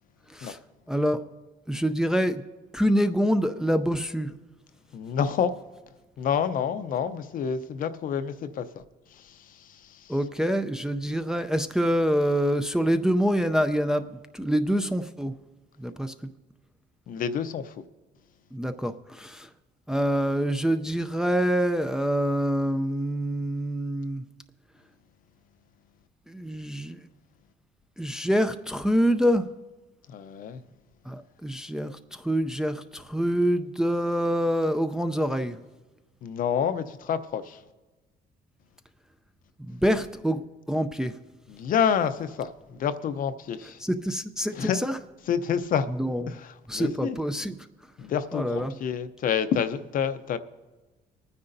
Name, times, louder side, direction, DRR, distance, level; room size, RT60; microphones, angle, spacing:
voice 1, 0.9-1.2 1.7-2.4 2.7-4.3 10.1-15.3 15.8-16.3 18.5-19.5 19.9-24.2 26.3-27.0 28.0-29.5 31.1-35.6 39.6-40.4 40.7-41.2 43.8-45.0 45.9-46.4 46.7-47.6 48.3-48.7, equal, 5° right, 0.4 m, -26 dB
voice 2, 4.9-5.5 6.2-10.1 17.1-17.8 30.1-30.6 36.2-37.6 41.5-43.8 44.5-44.8 45.3-45.9 46.3-47.2 48.0-50.4, left 7 dB, 55° left, 0.6 m, -28 dB
25.0 x 9.6 x 2.6 m
cardioid pair, 110°, 17 cm